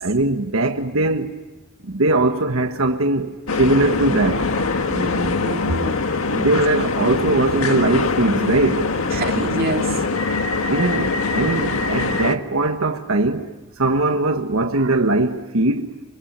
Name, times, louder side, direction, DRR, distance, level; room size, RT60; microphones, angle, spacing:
voice 1, 0.0-1.3 1.8-4.5 6.3-8.9 10.7-13.5 13.8-16.0, right 2 dB, 80° right, 1.4 m, -20 dB
sound 1, 3.5-12.4, left 3 dB, 90° left, 1.6 m, -23 dB
voice 2, 4.9-6.0 6.8-6.9 9.1-10.0, right 2 dB, 45° right, 2.5 m, -26 dB
25.5 x 25.0 x 9.0 m
head